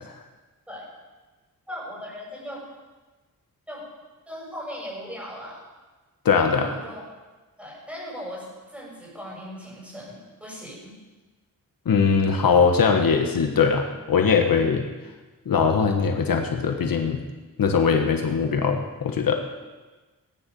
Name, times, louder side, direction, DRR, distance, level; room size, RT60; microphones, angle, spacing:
voice 1, 1.7-2.6 3.7-3.8 4.3-5.6 6.3-7.0 7.6-8.4 8.7-10.9, equal, 5° right, -5 dB, 7.5 m, -38 dB
voice 2, 6.2-6.7 11.8-14.8 15.4-17.2 17.6-19.3, left 5 dB, 75° left, 4 dB, 1.5 m, -21 dB
18.5 x 10.5 x 7.0 m, 1.2 s
wide cardioid pair, 160°, 35 cm